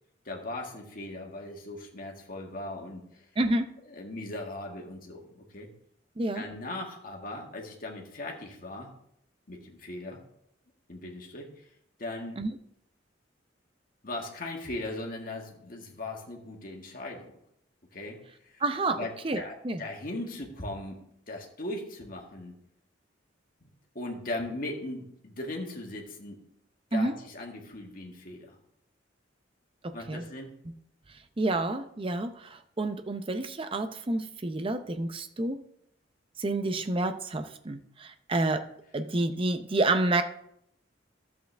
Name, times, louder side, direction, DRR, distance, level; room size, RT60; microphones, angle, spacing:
voice 1, 0.3-3.2 3.9-5.7 6.3-8.9 9.5-10.2 10.9-11.6 12.0-12.4 14.0-17.3 17.9-21.0 21.3-22.5 24.0-26.4 26.9-28.6 29.9-30.5, left 2 dB, 50° left, 0 dB, 1.8 m, -38 dB
voice 2, 3.4-3.7 6.2-6.4 12.4-12.5 18.6-19.0 19.2-19.8 26.9-27.1 29.8-30.2 31.4-35.6 36.4-38.6 38.9-40.2, right 2 dB, 30° right, 8 dB, 0.6 m, -29 dB
12.5 x 7.8 x 3.4 m, 0.73 s
head